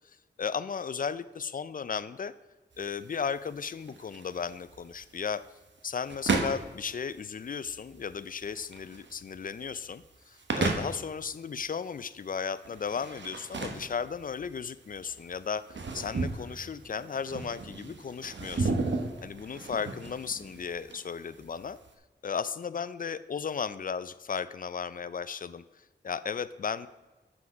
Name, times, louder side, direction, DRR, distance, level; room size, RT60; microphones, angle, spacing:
voice 1, 0.4-2.3 2.8-5.4 5.8-18.8 19.2-21.8 22.2-25.6 26.0-26.9, left 6 dB, 50° left, 15 dB, 0.4 m, -35 dB
sound 1, 2.7-21.9, right 3 dB, 75° right, 1.0 m, -36 dB
7.8 x 6.0 x 5.1 m, 1.2 s
wide cardioid pair, 75°, 19 cm